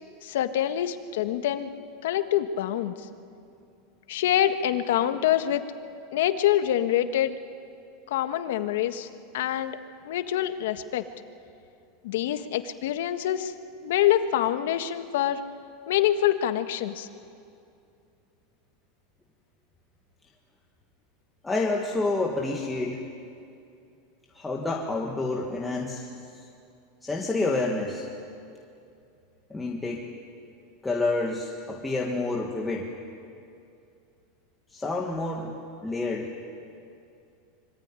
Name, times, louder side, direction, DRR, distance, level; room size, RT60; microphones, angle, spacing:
voice 1, 0.2-1.7 2.0-2.9 4.1-5.6 6.1-7.3 8.1-9.1 9.3-9.8 10.0-11.0 12.0-13.5 13.8-15.4 15.9-17.1, left 11 dB, 70° left, 9 dB, 1.6 m, -25 dB
voice 2, 21.4-23.0 24.3-26.1 27.0-28.0 29.5-30.1 30.8-32.9 34.7-35.6 35.8-36.3, left 2 dB, 5° left, -1 dB, 1.6 m, -28 dB
25.0 x 24.0 x 9.8 m, 2.5 s
supercardioid pair, 170°, 0 cm